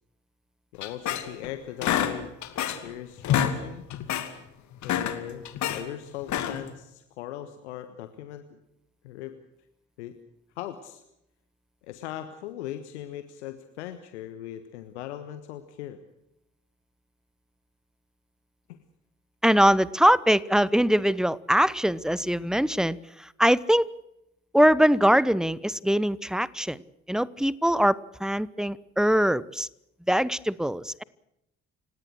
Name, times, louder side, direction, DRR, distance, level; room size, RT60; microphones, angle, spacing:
voice 1, 0.7-2.3 2.8-3.9 4.8-8.6 9.0-9.3 10.0-10.2 10.6-11.0 11.8-16.0 18.7-18.8, left 12 dB, 75° left, 10 dB, 1.4 m, -39 dB
sound 1, 0.8-1.5 1.8-2.9 3.2-3.6 3.9-4.3 4.7-5.8 6.2-6.7, left 10 dB, 55° left, 2.6 m, -27 dB
voice 2, 19.4-23.9 24.5-26.8 27.1-29.7 30.1-31.0, equal, ahead, 21 dB, 1.0 m, -22 dB
29.5 x 17.5 x 6.4 m, 0.83 s
figure-of-eight pair, 45°, 34 cm